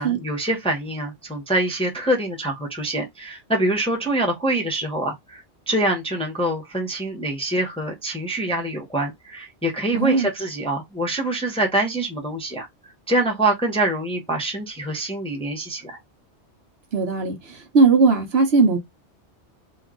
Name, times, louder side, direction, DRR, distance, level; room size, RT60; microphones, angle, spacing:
voice 1, 0.0-12.7 13.1-16.0, right 1 dB, 5° left, 0.7 m, -25 dB
voice 2, 9.9-10.3 16.9-17.4 17.7-18.8, right 4 dB, 65° right, 1.2 m, -17 dB
3.1 x 2.4 x 3.6 m
omnidirectional pair, 1.2 m